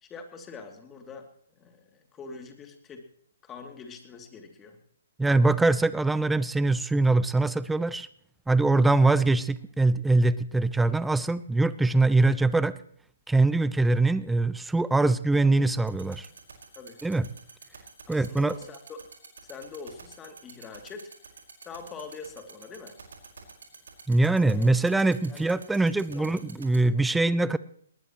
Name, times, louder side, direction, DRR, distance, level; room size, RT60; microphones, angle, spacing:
voice 1, 0.0-1.3 1.6-3.0 3.4-4.8 9.0-9.1 16.8-17.0 18.1-19.1 19.4-21.1 21.6-23.0 24.4-24.7 25.3-26.4, left 4 dB, 15° left, 5 dB, 2.7 m, -44 dB
voice 2, 5.2-8.1 8.5-12.7 13.3-16.3 17.0-17.2 18.1-18.5 24.1-27.6, right 2 dB, 5° right, 17 dB, 0.5 m, -23 dB
sound 1, 15.9-26.8, right 5 dB, 65° right, 5.1 m, -46 dB
20.0 x 19.0 x 3.1 m, 0.63 s
figure-of-eight pair, 130°, 0 cm